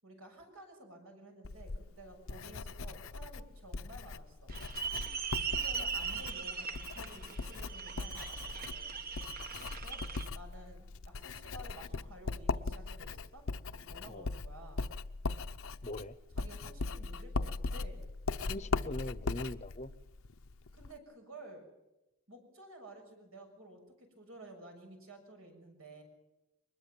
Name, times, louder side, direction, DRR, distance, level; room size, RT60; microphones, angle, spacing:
voice 1, 0.0-4.5 5.4-8.9 9.6-10.0 10.3-13.4 13.7-14.8 16.4-18.1 20.7-21.7 22.3-26.0, right 1 dB, 80° right, 4 dB, 6.7 m, -53 dB
Writing, 1.4-21.0, left 3 dB, 70° left, 0.8 m, -40 dB
sound 1, 4.5-10.3, right 6 dB, 45° right, 1.4 m, -39 dB
voice 2, 15.8-16.2 18.4-19.9, left 1 dB, 35° left, 15 dB, 0.9 m, -42 dB
23.5 x 20.5 x 7.4 m, 0.97 s
head